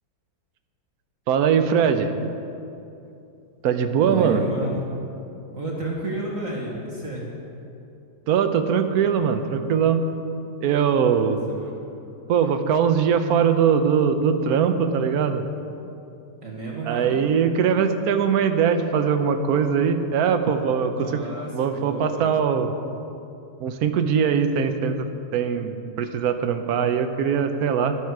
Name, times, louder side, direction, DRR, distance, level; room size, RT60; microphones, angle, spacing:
voice 1, 1.3-2.1 3.6-4.4 8.3-10.1 10.6-11.4 12.3-15.4 16.9-21.2 21.5-22.7 23.6-25.1 25.3-27.9, right 7 dB, 60° right, 8 dB, 1.1 m, -21 dB
voice 2, 4.0-4.8 5.5-7.3 11.2-11.8 16.4-17.2 20.8-22.5, right 2 dB, 45° right, -3 dB, 1.8 m, -32 dB
13.0 x 11.5 x 4.7 m, 2.7 s
omnidirectional pair, 2.1 m